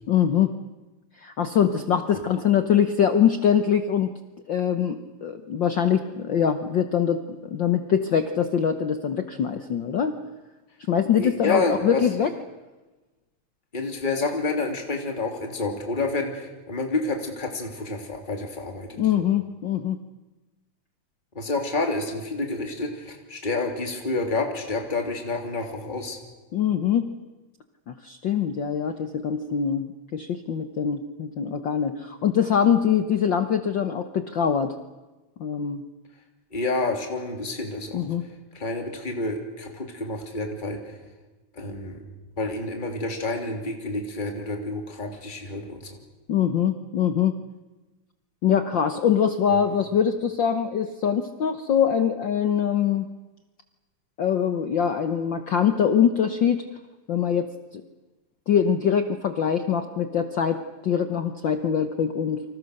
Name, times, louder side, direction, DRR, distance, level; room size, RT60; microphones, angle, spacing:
voice 1, 0.1-0.5 1.2-4.1 4.5-10.2 10.9-12.3 19.0-20.0 26.5-27.0 27.9-34.7 35.4-35.8 37.9-38.2 46.3-47.4 48.4-53.1 54.2-56.6 57.1-57.5 57.7-57.8 58.5-62.4, left 8 dB, 60° left, 8 dB, 1.3 m, -23 dB
voice 2, 11.2-12.0 13.7-19.0 21.3-26.2 36.5-38.0 38.5-41.0 41.5-42.0 42.4-45.8, left 3 dB, 15° left, 3 dB, 3.0 m, -29 dB
29.5 x 25.5 x 6.6 m, 1.2 s
omnidirectional pair, 3.3 m